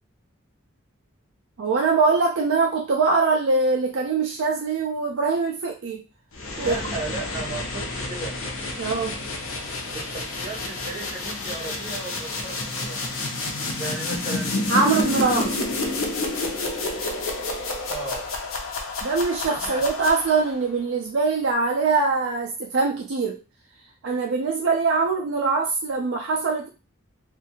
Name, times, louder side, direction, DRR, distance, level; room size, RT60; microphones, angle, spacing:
voice 1, 1.6-6.0 6.6-6.7 8.8-9.2 14.7-15.6 19.0-23.4 24.0-26.7, right 4 dB, 65° right, 1 dB, 0.4 m, -23 dB
sound 1, 6.3-20.6, left 2 dB, 75° left, 0.6 m, -29 dB
voice 2, 6.6-8.4 9.9-13.0 13.8-15.3 17.9-18.3 19.4-19.8, right 3 dB, 30° right, -5 dB, 1.1 m, -36 dB
2.6 x 2.4 x 2.7 m, 0.31 s
head